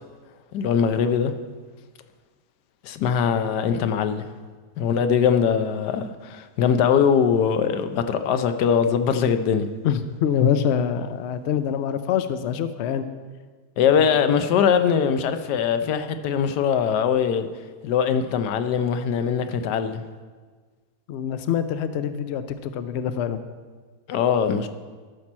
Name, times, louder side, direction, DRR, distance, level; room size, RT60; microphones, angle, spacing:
voice 1, 0.5-1.3 2.8-4.3 4.8-9.7 13.8-17.5 17.8-20.0 24.1-24.7, left 7 dB, 90° left, 9 dB, 1.2 m, -21 dB
voice 2, 9.8-13.1 21.1-23.4, left 8 dB, 70° left, 11 dB, 0.6 m, -25 dB
13.0 x 6.0 x 4.3 m, 1.5 s
omnidirectional pair, 1.7 m